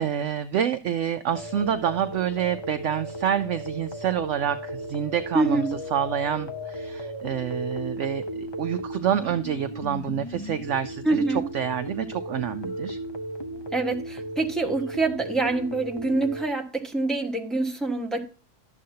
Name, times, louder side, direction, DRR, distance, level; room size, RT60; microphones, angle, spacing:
voice 1, 0.0-13.0, right 9 dB, 65° right, 0.8 m, -28 dB
sound 1, 1.3-16.5, equal, 30° left, 0.5 m, -35 dB
voice 2, 5.3-5.7 11.0-11.5 13.7-18.2, right 3 dB, ahead, 1.2 m, -25 dB
12.0 x 7.7 x 2.8 m
omnidirectional pair, 1.6 m